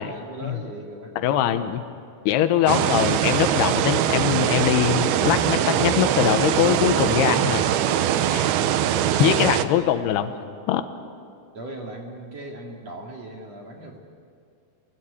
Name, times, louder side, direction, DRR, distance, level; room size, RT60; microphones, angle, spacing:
voice 1, 0.0-1.7 9.7-10.3 11.5-14.0, right 1 dB, 45° right, 0 dB, 2.9 m, -39 dB
voice 2, 1.2-1.8 2.3-7.6 8.3-8.5 9.2-10.3 10.7-10.8, left 11 dB, 80° left, 9 dB, 3.0 m, -22 dB
sound 1, 2.7-9.7, right 10 dB, 75° right, 2.6 m, -22 dB
30.0 x 21.5 x 8.5 m, 2.3 s
omnidirectional pair, 4.8 m